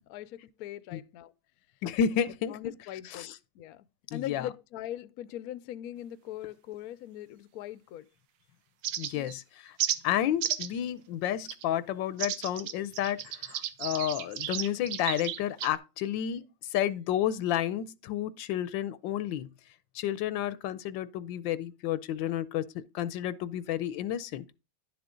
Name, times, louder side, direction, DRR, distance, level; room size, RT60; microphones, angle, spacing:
voice 1, 0.1-1.3 2.5-8.1 9.1-9.3, left 12 dB, 70° left, 0.9 m, -41 dB
voice 2, 1.8-2.6 3.1-3.4 4.1-4.5 9.0-9.8 10.0-19.5 19.9-24.6, left 10 dB, 90° left, 1.4 m, -31 dB
sound 1, 8.8-9.4 9.8-10.0 10.4-10.8 11.5-11.6 12.2-15.8, right 10 dB, 80° right, 1.5 m, -33 dB
11.0 x 7.0 x 3.8 m
omnidirectional pair, 2.0 m